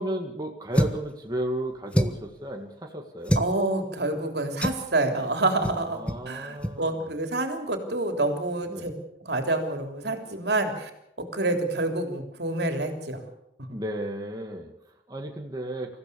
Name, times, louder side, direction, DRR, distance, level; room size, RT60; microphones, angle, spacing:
voice 1, 0.0-3.4 5.7-7.1 8.7-8.9 13.7-16.0, right 1 dB, 20° right, 2 dB, 2.0 m, -34 dB
sound 1, 0.7-1.1 1.9-2.3 3.2-3.5 4.6-4.9 5.6-5.8 6.1-6.2 6.6-6.8, equal, 5° left, 1.1 m, -25 dB
voice 2, 3.4-6.0 6.3-8.9 9.2-10.9 11.2-13.2, right 2 dB, 70° right, 5 dB, 3.4 m, -27 dB
25.5 x 15.5 x 7.0 m, 0.81 s
head